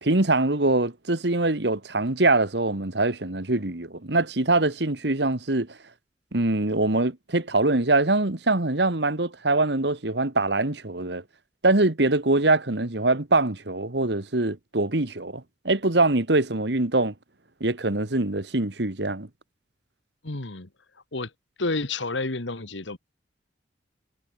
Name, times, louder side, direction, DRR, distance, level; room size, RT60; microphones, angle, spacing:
voice 1, 0.0-5.8 6.3-11.2 11.6-17.1 17.6-19.3, right 2 dB, 65° right, 1.9 m, -23 dB
voice 2, 20.2-20.7 21.1-21.3 21.6-23.0, left 3 dB, 85° left, 1.9 m, -30 dB
head